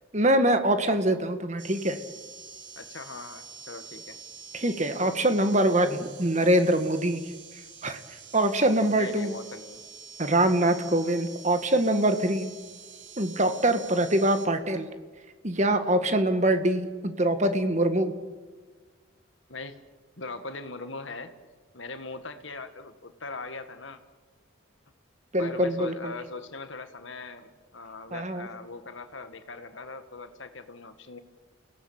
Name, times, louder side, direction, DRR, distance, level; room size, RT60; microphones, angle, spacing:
voice 1, 0.1-2.0 4.5-7.2 7.8-8.0 8.3-9.3 10.2-12.5 13.2-14.9 15.4-18.2 25.3-25.9 28.1-28.5, right 1 dB, 35° right, 9 dB, 1.7 m, -24 dB
sound 1, 1.6-14.5, right 5 dB, 60° right, 3.8 m, -46 dB
voice 2, 2.8-4.2 8.9-9.8 19.5-19.8 20.2-21.3 21.7-24.0 25.4-31.2, left 3 dB, 65° left, 9 dB, 1.8 m, -40 dB
29.5 x 17.5 x 8.8 m, 1.5 s
head